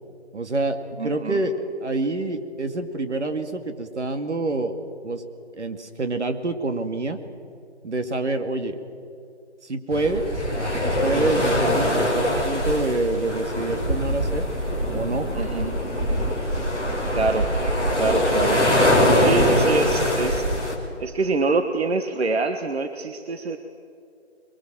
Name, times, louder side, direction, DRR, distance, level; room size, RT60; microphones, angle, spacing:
voice 1, 0.3-1.5 1.8-5.2 5.6-7.2 7.8-8.8 9.6-10.3 10.8-14.5 14.9-15.3, right 2 dB, 80° right, 7 dB, 2.5 m, -27 dB
voice 2, 1.0-1.4 15.3-15.7 17.1-17.5 18.0-18.6 19.1-20.5 21.0-23.6, right 3 dB, 65° right, 7 dB, 1.4 m, -25 dB
sound 1, 9.9-20.8, equal, 10° right, 1.9 m, -22 dB
22.5 x 22.5 x 7.5 m, 2.5 s
hypercardioid pair, 170°, 34 cm